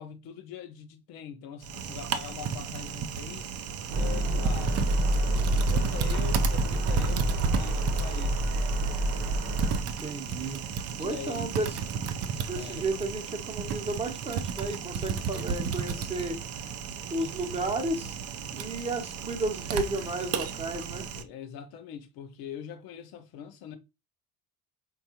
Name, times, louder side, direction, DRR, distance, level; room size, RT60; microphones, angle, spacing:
voice 1, 0.0-3.5 3.9-4.8 5.1-8.8 10.0-10.1 11.0-11.6 12.5-12.9 21.1-23.8, left 8 dB, 75° left, 0.7 m, -43 dB
Typing, 1.6-21.2, right 7 dB, 45° right, 0.4 m, -34 dB
sound 1, 3.9-9.8, right 1 dB, 70° right, 0.8 m, -27 dB
voice 2, 9.8-10.6 11.0-11.7 12.4-16.4 17.1-18.2 18.5-21.1, right 2 dB, 15° right, 0.8 m, -33 dB
3.5 x 2.3 x 2.7 m
cardioid pair, 110°, 37 cm